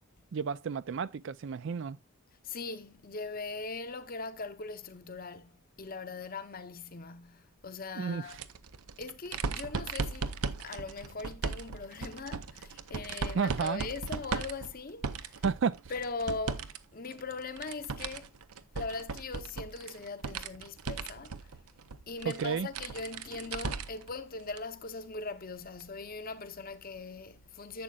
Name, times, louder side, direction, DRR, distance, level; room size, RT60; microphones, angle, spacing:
voice 1, 0.3-2.0 8.0-8.4 13.3-13.8 15.4-15.8 22.2-22.7, right 6 dB, 55° right, 0.4 m, -31 dB
voice 2, 2.4-8.4 9.0-15.4 15.9-18.3 18.7-21.5 22.1-27.8, left 3 dB, 40° left, 0.8 m, -40 dB
sound 1, 8.3-16.8 17.1-24.1 24.5-24.6 25.8-25.9, right 4 dB, 90° right, 0.7 m, -37 dB
11.5 x 7.6 x 2.4 m
head